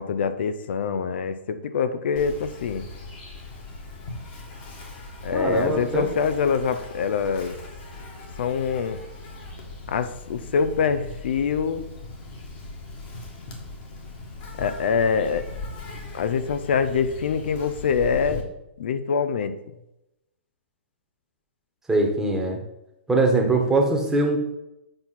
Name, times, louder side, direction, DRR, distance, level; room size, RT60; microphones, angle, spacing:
voice 1, 0.0-2.8 5.2-7.6 8.4-9.0 9.9-11.8 14.6-15.4 16.1-18.4 18.8-19.5, left 6 dB, 60° left, 11 dB, 0.6 m, -24 dB
Insect, 2.2-18.4, left 2 dB, 40° left, 1.9 m, -39 dB
voice 2, 5.3-6.1 21.9-22.6 23.1-24.4, right 2 dB, 5° right, 0 dB, 1.3 m, -22 dB
7.7 x 4.4 x 4.2 m, 0.89 s
figure-of-eight pair, 120°, 7 cm